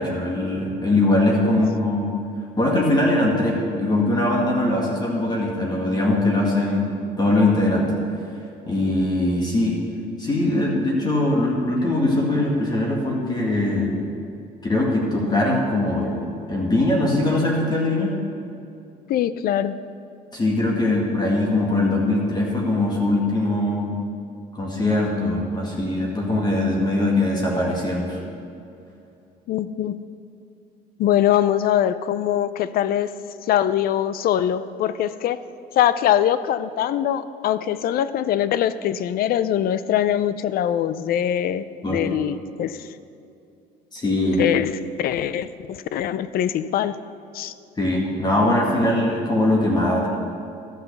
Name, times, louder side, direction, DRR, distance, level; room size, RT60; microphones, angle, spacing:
voice 1, 0.0-2.1 2.6-6.9 7.2-7.9 8.7-9.8 10.2-13.9 14.6-16.2 16.5-18.1 20.3-23.9 24.5-28.2 41.8-42.0 43.9-44.4 47.8-50.1, left 1 dB, 25° left, -2 dB, 1.9 m, -21 dB
voice 2, 19.1-19.8 29.5-30.1 31.0-33.1 33.4-35.4 35.7-42.9 44.3-47.0 47.3-47.5, left 10 dB, 60° left, 15 dB, 0.5 m, -22 dB
13.0 x 5.7 x 6.9 m, 2.6 s
cardioid pair, 110°, 17 cm